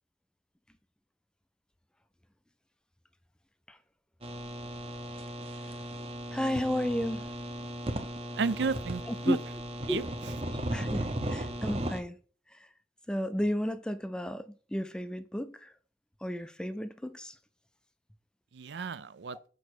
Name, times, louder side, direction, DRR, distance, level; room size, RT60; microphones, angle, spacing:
sound 1, 4.2-12.0, right 1 dB, 30° right, 0.7 m, -36 dB
voice 1, 6.3-7.2 9.1-9.4 9.9-10.0 10.7-12.2 13.1-15.7 16.2-17.3, left 1 dB, 5° left, 0.3 m, -32 dB
voice 2, 8.4-9.4 9.9-10.0 18.5-19.4, right 4 dB, 75° right, 0.5 m, -32 dB
6.4 x 5.2 x 4.5 m
head